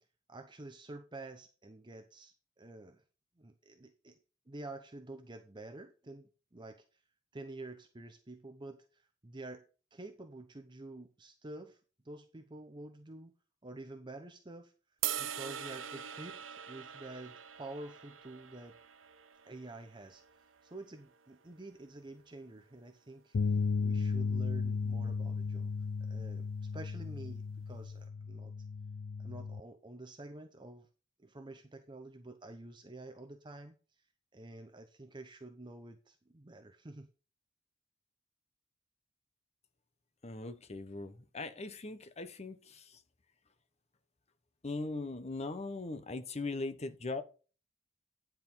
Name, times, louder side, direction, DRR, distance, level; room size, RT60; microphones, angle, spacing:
voice 1, 0.3-3.0 3.4-4.2 4.5-6.8 7.3-9.6 9.9-11.8 12.0-13.3 13.6-14.7 15.2-18.8 19.4-20.2 20.6-25.7 26.0-28.5 29.2-30.9 31.2-33.7 34.3-37.1, right 2 dB, 25° right, 0.8 m, -49 dB
sound 1, 15.0-21.3, right 10 dB, 80° right, 0.8 m, -43 dB
sound 2, 23.3-29.6, left 5 dB, 70° left, 0.5 m, -35 dB
voice 2, 40.2-43.0 44.6-47.2, left 3 dB, 35° left, 0.9 m, -40 dB
10.0 x 4.6 x 5.5 m
head